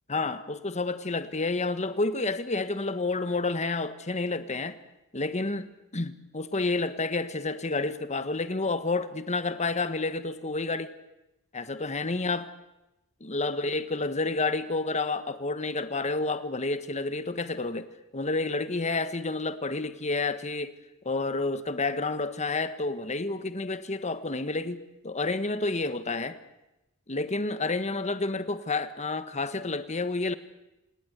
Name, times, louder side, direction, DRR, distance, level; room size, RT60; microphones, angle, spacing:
voice 1, 0.1-4.8 5.1-10.9 11.5-12.5 13.2-17.9 18.1-20.8 21.0-26.4 27.1-30.3, left 3 dB, 30° left, 11 dB, 1.4 m, -30 dB
27.5 x 19.5 x 8.2 m, 0.94 s
head